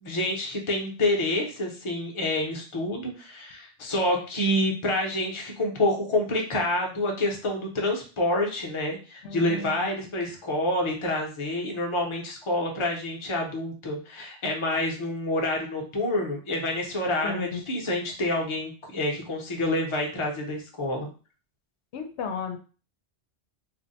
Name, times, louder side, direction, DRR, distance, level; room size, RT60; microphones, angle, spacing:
voice 1, 0.0-21.1, left 1 dB, 35° left, 1 dB, 0.7 m, -28 dB
voice 2, 9.2-9.9 17.2-17.6 21.9-22.6, left 5 dB, 85° left, 5 dB, 0.9 m, -34 dB
2.5 x 2.1 x 3.9 m, 0.37 s
omnidirectional pair, 1.1 m